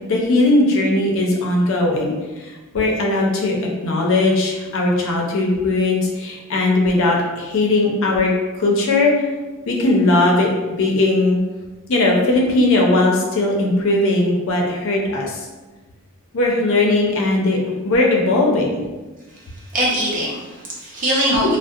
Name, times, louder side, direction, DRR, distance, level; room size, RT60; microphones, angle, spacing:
voice 1, 0.0-3.5 3.8-9.1 9.7-11.4 11.9-15.4 16.3-18.8, left 2 dB, 65° left, -1 dB, 0.5 m, -18 dB
voice 2, 19.3-21.6, equal, 40° right, -5 dB, 0.7 m, -22 dB
2.6 x 2.0 x 2.3 m, 1.2 s
head